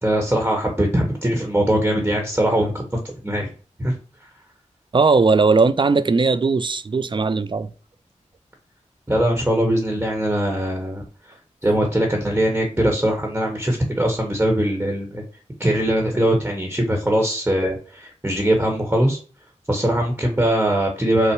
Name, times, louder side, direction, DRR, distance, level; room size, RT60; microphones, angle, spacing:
voice 1, 0.0-3.5 3.8-3.9 9.1-11.0 11.6-15.2 15.6-19.2 19.7-21.3, right 1 dB, 15° right, 1.1 m, -21 dB
voice 2, 4.9-7.7, right 4 dB, 40° right, 0.4 m, -18 dB
5.6 x 2.1 x 4.5 m
wide cardioid pair, 60°, 13 cm